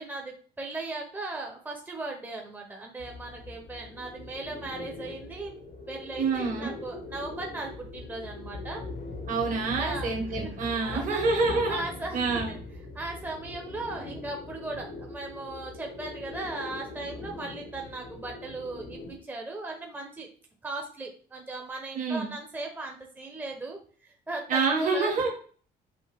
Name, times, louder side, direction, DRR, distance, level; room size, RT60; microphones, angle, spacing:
voice 1, 0.0-5.5 5.9-8.8 9.8-11.2 11.7-12.6 12.9-20.3 20.6-25.2, right 2 dB, 10° right, 1 dB, 0.8 m, -38 dB
sound 1, 3.0-19.2, left 2 dB, 80° left, 1.4 m, -41 dB
voice 2, 6.2-6.7 9.3-11.8 12.1-12.5 21.9-22.3 24.5-25.3, right 4 dB, 50° right, 0 dB, 1.5 m, -27 dB
6.3 x 2.4 x 3.4 m, 0.43 s
cardioid pair, 110°, 17 cm